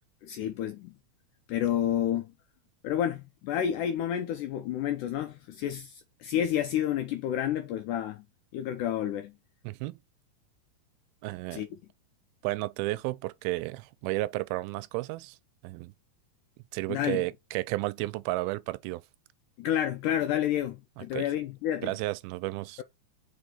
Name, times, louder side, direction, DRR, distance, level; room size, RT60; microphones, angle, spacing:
voice 1, 0.2-0.9 1.5-2.3 2.8-8.2 8.5-9.3 11.5-11.7 16.9-17.2 19.6-21.9, left 10 dB, 80° left, 1.8 m, -30 dB
voice 2, 9.6-10.0 11.2-11.6 12.4-15.4 15.6-15.9 16.7-19.0 21.0-21.2 21.8-22.8, right 20 dB, 90° right, 2.4 m, -32 dB
5.1 x 4.9 x 4.3 m
omnidirectional pair, 4.3 m